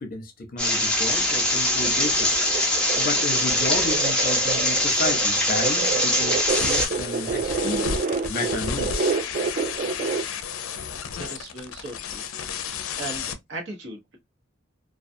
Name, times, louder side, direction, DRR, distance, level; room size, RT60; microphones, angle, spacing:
voice 1, 0.0-2.3 3.0-7.9 8.3-9.0, left 2 dB, 45° left, 0.7 m, -32 dB
sound 1, 0.6-6.9, left 1 dB, 5° left, 0.7 m, -22 dB
sound 2, 1.5-10.2, right 5 dB, 40° right, 0.3 m, -29 dB
sound 3, 6.5-13.3, left 7 dB, 80° left, 0.4 m, -32 dB
voice 2, 11.2-12.2 12.5-14.2, right 2 dB, 65° right, 1.0 m, -38 dB
2.3 x 2.3 x 2.6 m
head